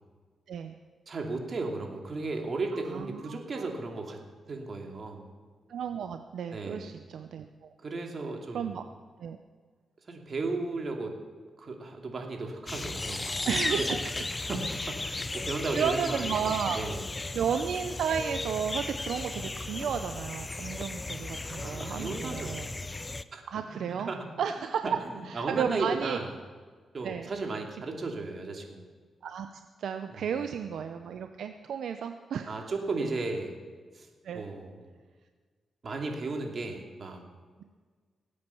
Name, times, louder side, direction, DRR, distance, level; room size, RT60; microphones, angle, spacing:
voice 1, 1.1-4.2 4.5-5.3 6.5-6.9 7.8-8.8 10.1-11.2 11.6-13.3 13.8-14.1 14.5-17.0 21.4-22.8 23.3-24.2 24.8-24.9 25.3-26.3 26.9-28.8 30.1-30.3 32.5-33.6 33.9-34.1 34.3-34.8 35.8-37.2, right 3 dB, 45° right, 2 dB, 2.6 m, -35 dB
voice 2, 2.9-3.7 5.7-7.7 8.5-8.8 9.2-9.4 13.4-14.0 15.7-16.8 17.3-22.7 23.5-24.1 24.4-24.8 25.3-26.2 27.0-27.3 29.2-29.5 29.8-32.6 34.2-34.4, right 7 dB, 80° right, 7 dB, 0.7 m, -33 dB
sound 1, 12.7-23.2, left 2 dB, 25° left, 0.6 m, -35 dB
18.0 x 8.6 x 7.0 m, 1.5 s
cardioid pair, 85°, 0 cm